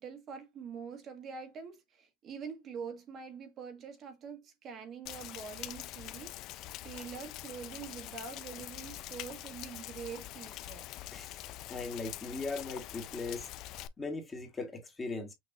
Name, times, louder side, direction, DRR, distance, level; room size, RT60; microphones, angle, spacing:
voice 1, 0.0-6.4 6.8-10.9, right 6 dB, 40° right, 1.5 m, -45 dB
Rain, 5.1-13.9, left 14 dB, 55° left, 0.5 m, -44 dB
voice 2, 11.7-13.5 14.0-15.3, left 3 dB, 20° left, 1.7 m, -39 dB
6.1 x 2.9 x 2.9 m
supercardioid pair, 130°, 0 cm